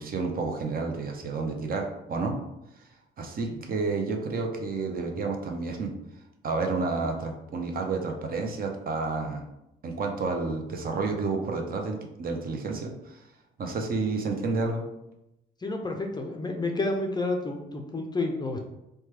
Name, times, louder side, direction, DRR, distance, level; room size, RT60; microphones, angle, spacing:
voice 1, 0.0-2.4 3.2-5.9 6.4-9.4 9.8-13.2 13.6-14.8, right 3 dB, 45° right, 3 dB, 0.5 m, -30 dB
voice 2, 15.6-18.6, left 2 dB, 20° left, 3 dB, 0.4 m, -30 dB
3.1 x 2.2 x 3.1 m, 0.89 s
cardioid pair, 90°, 20 cm